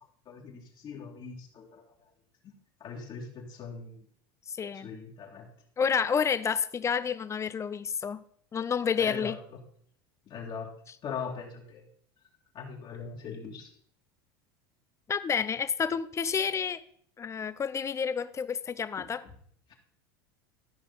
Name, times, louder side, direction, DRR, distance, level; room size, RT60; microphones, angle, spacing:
voice 1, 0.3-1.8 2.4-2.5 2.8-4.1 4.7-5.5 9.0-9.4 10.3-10.7 11.0-11.8 12.5-13.7, left 5 dB, 40° left, -1 dB, 2.0 m, -40 dB
voice 2, 4.5-4.9 5.8-8.2 8.5-9.4 15.1-16.8 17.2-19.2, left 6 dB, 25° left, 15 dB, 0.6 m, -29 dB
13.0 x 5.0 x 5.5 m, 0.63 s
supercardioid pair, 110°, 12 cm